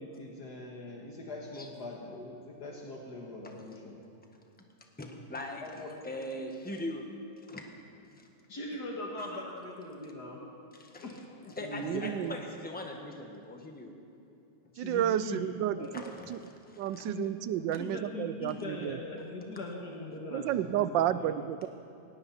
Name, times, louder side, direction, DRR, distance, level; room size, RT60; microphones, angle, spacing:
voice 1, 0.0-4.0 5.6-5.9 8.5-10.4 11.0-12.2 14.7-15.4 15.8-15.9 17.1-17.3 17.6-21.3, left 2 dB, 60° left, -1 dB, 2.0 m, -41 dB
voice 2, 5.0-7.1 7.5-7.7 8.2-8.3 9.2-9.4 10.8-11.0 11.6-13.9 15.9-17.0, left 1 dB, 5° left, 2 dB, 1.2 m, -41 dB
voice 3, 11.8-12.4 14.8-16.0 16.3-16.4 16.8-19.0 20.3-21.7, right 11 dB, 80° right, 14 dB, 1.3 m, -31 dB
18.5 x 17.0 x 4.2 m, 2.7 s
omnidirectional pair, 2.0 m